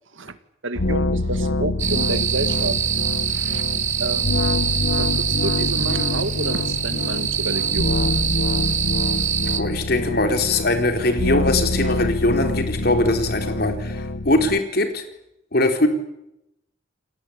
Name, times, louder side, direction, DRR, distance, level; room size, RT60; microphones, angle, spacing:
voice 1, 0.6-2.8 3.3-3.7 4.0-4.4 5.0-8.0, right 2 dB, 75° right, 11 dB, 2.1 m, -30 dB
sound 1, 0.7-14.6, left 2 dB, 75° left, 1.2 m, -25 dB
sound 2, 1.8-9.6, right 9 dB, 35° right, 1.5 m, -24 dB
voice 2, 9.6-15.0 15.5-15.9, left 2 dB, 50° left, 6 dB, 4.0 m, -21 dB
29.5 x 20.0 x 8.7 m, 0.83 s
head